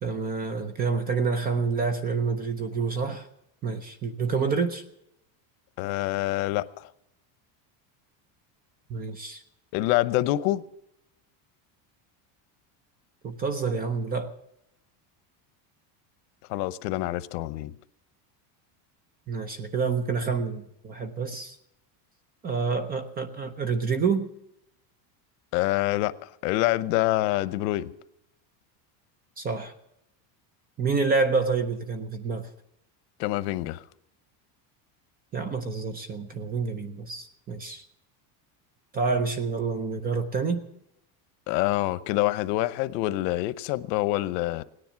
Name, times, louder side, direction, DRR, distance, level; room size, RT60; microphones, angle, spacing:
voice 1, 0.0-3.3 3.6-4.8 8.9-9.4 13.2-14.3 19.3-21.6 22.4-24.3 29.4-29.7 30.8-32.5 35.3-37.8 38.9-40.6, right 4 dB, 20° right, 11 dB, 0.6 m, -28 dB
voice 2, 5.8-6.9 9.7-10.6 16.5-17.7 25.5-27.9 33.2-33.8 41.5-44.6, left 17 dB, 85° left, 16 dB, 0.9 m, -26 dB
17.5 x 10.0 x 7.5 m, 0.79 s
cardioid pair, 175°, 48 cm